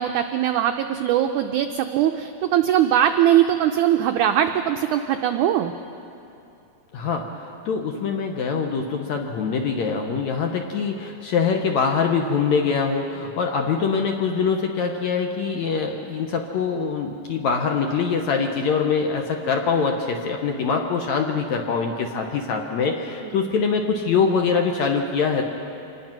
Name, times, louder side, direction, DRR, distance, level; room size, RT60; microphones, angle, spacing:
voice 1, 0.0-5.7, right 11 dB, 85° right, 6 dB, 1.7 m, -21 dB
voice 2, 6.9-25.4, left 5 dB, 70° left, 3 dB, 1.9 m, -24 dB
25.5 x 19.5 x 6.0 m, 2.7 s
omnidirectional pair, 4.3 m